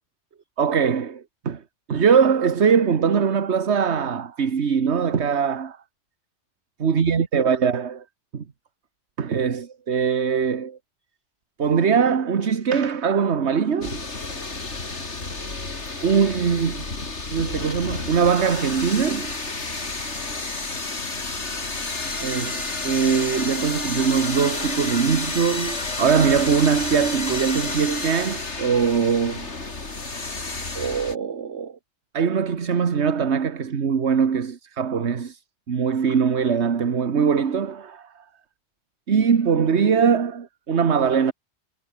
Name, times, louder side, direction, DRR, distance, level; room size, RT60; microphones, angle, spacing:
voice 1, 0.6-1.6 1.9-5.8 6.8-8.0 8.3-8.4 9.2-10.8 11.6-14.0 16.0-16.8 17.3-19.4 22.2-29.5 30.7-31.8 32.1-35.4 35.7-38.2 39.1-41.3, right 6 dB, 70° right, 1.7 m, -22 dB
sound 1, 13.8-31.1, left 3 dB, 75° left, 3.5 m, -30 dB
omnidirectional pair, 1.2 m